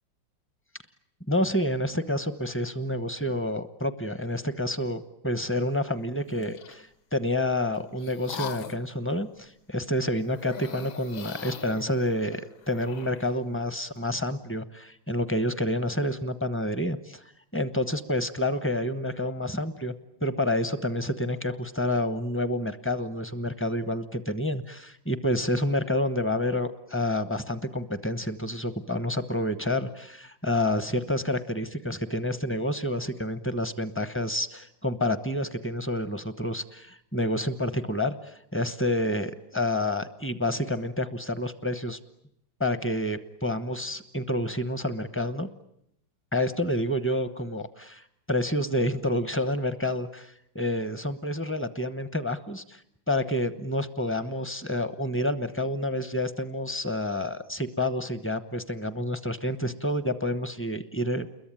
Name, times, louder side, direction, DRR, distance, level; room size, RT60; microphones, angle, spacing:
voice 1, 1.3-17.2 17.5-19.9 20.2-42.0 42.6-45.5 46.3-52.8 53.1-61.3, left 1 dB, 15° left, 11 dB, 0.5 m, -29 dB
sound 1, 6.2-6.8 7.5-8.9 10.3-13.4, left 7 dB, 70° left, 2.0 m, -41 dB
29.0 x 22.0 x 9.0 m, 0.76 s
omnidirectional pair, 2.0 m